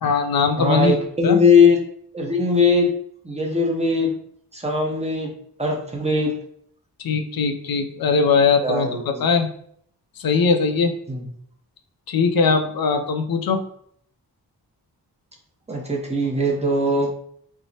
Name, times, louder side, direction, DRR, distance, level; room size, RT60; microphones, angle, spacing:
voice 1, 0.0-0.9 1.2-1.4 7.0-9.5 10.2-10.9 12.1-13.6, left 5 dB, 65° left, 5 dB, 0.5 m, -20 dB
voice 2, 0.6-1.8 2.1-2.9 3.2-4.1 4.5-5.3 5.6-6.4 8.6-9.2 11.1-11.3 15.7-17.1, left 3 dB, 15° right, -1 dB, 0.7 m, -20 dB
4.5 x 2.0 x 2.8 m, 0.65 s
wide cardioid pair, 105°, 40 cm